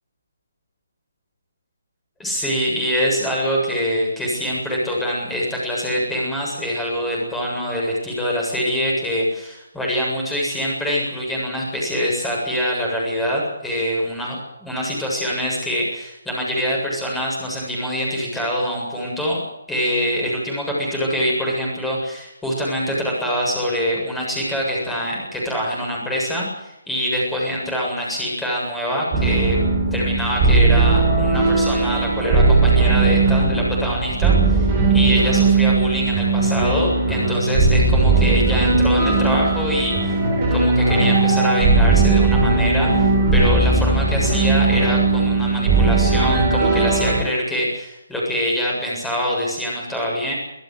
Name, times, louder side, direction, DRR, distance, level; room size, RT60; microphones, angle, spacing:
voice 1, 2.2-19.4 19.7-29.6 29.9-40.2 40.5-50.3, equal, 5° left, -3 dB, 7.7 m, -24 dB
sound 1, 29.1-47.2, right 3 dB, 25° right, 5.9 m, -18 dB
26.0 x 15.0 x 8.1 m, 0.89 s
figure-of-eight pair, 145°, 0 cm